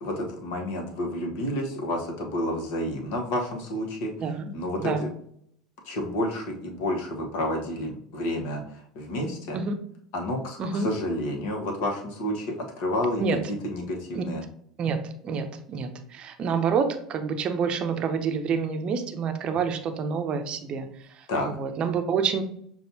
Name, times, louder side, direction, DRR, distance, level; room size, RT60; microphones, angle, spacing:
voice 1, 0.0-4.1 4.5-5.1 5.8-9.6 10.1-14.4 21.3-21.5, left 1 dB, 55° left, 1 dB, 1.1 m, -30 dB
voice 2, 4.2-4.5 4.8-5.1 9.5-9.7 10.6-10.9 13.2-13.4 14.1-14.2 14.8-20.9 21.2-22.4, right 5 dB, 40° right, 7 dB, 0.6 m, -28 dB
6.6 x 2.4 x 2.8 m, 0.68 s
figure-of-eight pair, 75°, 3 cm